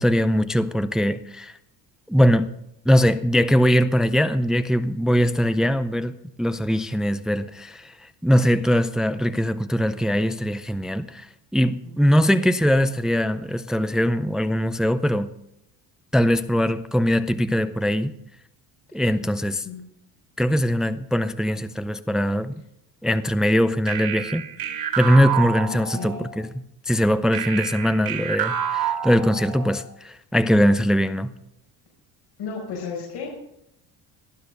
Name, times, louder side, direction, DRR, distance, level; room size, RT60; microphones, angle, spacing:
voice 1, 0.0-1.5 2.1-2.6 2.9-6.1 6.4-11.3 11.5-15.3 16.1-18.1 18.9-19.7 20.4-22.6 23.0-24.5 25.0-26.5 26.9-31.3, equal, ahead, 0.5 m, -21 dB
voice 2, 12.1-12.4 19.6-19.9 25.9-26.2 32.4-33.4, left 5 dB, 75° left, 5.4 m, -33 dB
sound 1, 23.9-26.4 27.3-29.8, right 9 dB, 65° right, 3.8 m, -28 dB
19.0 x 10.5 x 5.3 m
cardioid pair, 115°, 39 cm